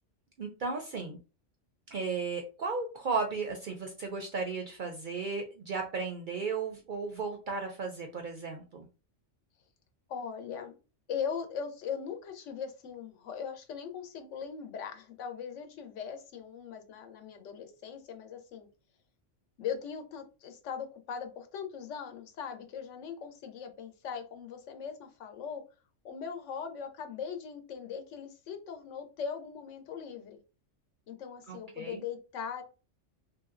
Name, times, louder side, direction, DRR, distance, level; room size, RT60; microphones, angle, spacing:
voice 1, 0.4-1.2 1.9-8.9 31.5-32.0, right 4 dB, 60° right, 4 dB, 0.5 m, -35 dB
voice 2, 10.1-10.7 11.1-18.7 19.6-25.6 26.0-30.4 31.1-32.6, left 7 dB, 80° left, 6 dB, 1.0 m, -40 dB
3.1 x 2.6 x 2.4 m, 0.33 s
omnidirectional pair, 1.3 m